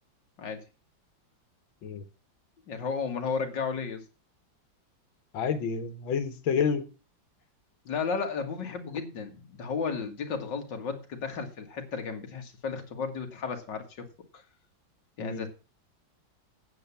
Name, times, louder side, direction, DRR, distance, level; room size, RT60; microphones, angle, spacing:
voice 1, 2.7-4.0 7.9-14.1 15.2-15.5, left 5 dB, 65° left, 5 dB, 2.4 m, -33 dB
voice 2, 5.3-6.9 15.2-15.5, left 6 dB, 90° left, 11 dB, 2.0 m, -29 dB
9.2 x 8.1 x 7.0 m, 0.34 s
omnidirectional pair, 2.1 m